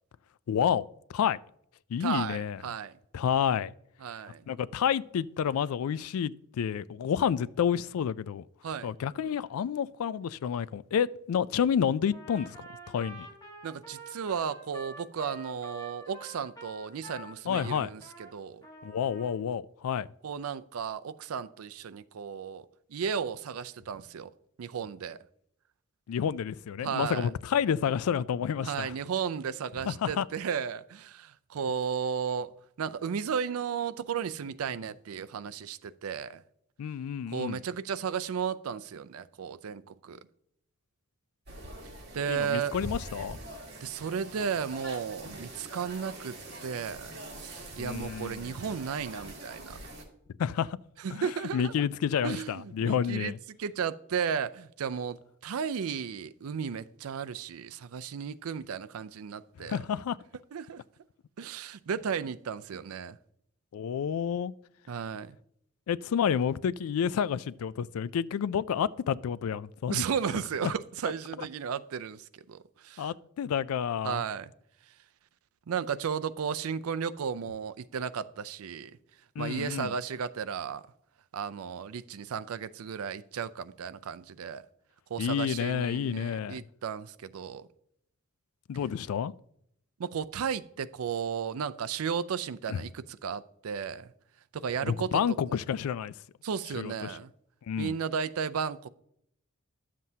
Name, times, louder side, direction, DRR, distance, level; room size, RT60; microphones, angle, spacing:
voice 1, 0.5-1.4 1.9-2.6 3.1-3.7 4.5-8.4 8.8-12.6 12.9-13.3 17.5-17.9 18.8-20.1 26.1-28.9 29.9-30.3 36.8-37.6 42.3-43.4 47.8-48.5 50.4-50.8 51.1-53.4 59.6-60.2 63.7-64.5 65.9-70.0 70.6-70.7 73.0-74.2 79.4-79.9 85.2-86.6 88.7-89.3 92.7-92.8 94.8-96.1 96.8-97.2 97.7-98.0, left 8 dB, 85° left, 0.3 m, -29 dB
voice 2, 2.0-2.9 4.0-4.4 8.6-8.9 13.6-18.7 20.2-24.3 24.6-25.2 26.8-27.3 28.6-32.5 32.8-36.4 37.3-40.2 42.1-42.8 43.8-46.4 46.6-49.8 51.0-51.8 52.2-59.8 60.5-60.8 61.4-63.2 64.9-65.3 69.9-73.1 74.0-74.5 75.7-78.9 79.4-80.8 81.3-84.6 85.1-87.7 90.0-94.1 94.5-95.2 95.5-95.6 96.4-97.3 97.8-98.9, right 7 dB, 85° right, 0.4 m, -34 dB
Trumpet, 12.1-18.3 18.6-19.4, right 2 dB, 20° left, 1.3 m, -47 dB
sound 1, 41.5-50.0, right 1 dB, 50° right, 2.3 m, -43 dB
12.0 x 7.5 x 2.8 m
head